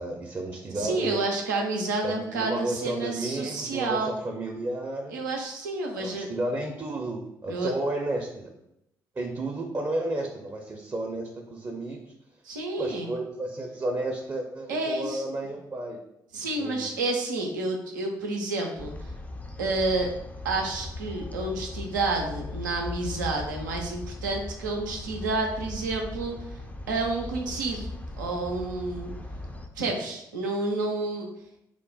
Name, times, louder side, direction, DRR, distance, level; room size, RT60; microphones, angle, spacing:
voice 1, 0.0-1.2 2.0-5.2 6.0-8.5 9.2-12.0 12.8-16.0 16.6-16.9, right 2 dB, 30° right, 1 dB, 0.6 m, -32 dB
voice 2, 0.7-4.2 5.1-6.3 7.5-7.7 12.4-13.1 14.7-15.3 16.3-18.9 19.6-20.1 20.4-26.5 26.9-29.1 29.8-31.3, right 2 dB, 85° right, 1 dB, 0.5 m, -29 dB
sound 1, 18.8-29.7, left 2 dB, 15° left, 0.4 m, -38 dB
2.8 x 2.1 x 4.0 m, 0.82 s
figure-of-eight pair, 40°, 10 cm